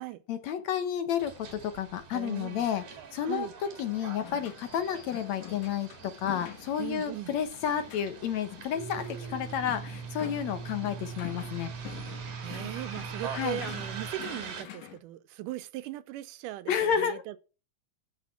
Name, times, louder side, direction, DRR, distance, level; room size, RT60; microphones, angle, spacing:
voice 1, 0.3-2.8 3.1-3.5 3.8-11.7 13.3-13.6 16.7-17.2, left 8 dB, 65° left, 2.2 m, -31 dB
Bus, 1.2-14.6, right 6 dB, 70° right, 3.6 m, -45 dB
voice 2, 2.1-2.7 3.2-3.5 6.8-7.3 12.4-17.4, right 15 dB, 90° right, 2.3 m, -39 dB
sound 1, 4.2-15.0, left 11 dB, 85° left, 2.9 m, -47 dB
Domestic sounds home sounds, 8.7-14.1, right 5 dB, 40° right, 4.9 m, -41 dB
13.5 x 5.0 x 7.3 m
omnidirectional pair, 3.6 m